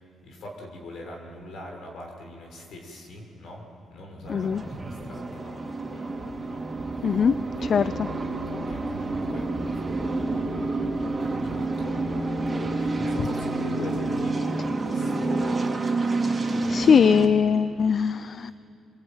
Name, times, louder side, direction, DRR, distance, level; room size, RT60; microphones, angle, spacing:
voice 1, 0.0-8.0 8.7-16.0 16.5-17.2 17.8-18.1, left 1 dB, 70° left, 2 dB, 6.2 m, -43 dB
sound 1, 4.2-17.3, right 2 dB, 20° right, 3.5 m, -28 dB
voice 2, 4.3-4.6 7.0-7.3 7.7-8.1 16.3-18.5, left 6 dB, 50° left, 14 dB, 0.6 m, -21 dB
26.5 x 22.0 x 9.1 m, 2.7 s
cardioid pair, 90°, 0 cm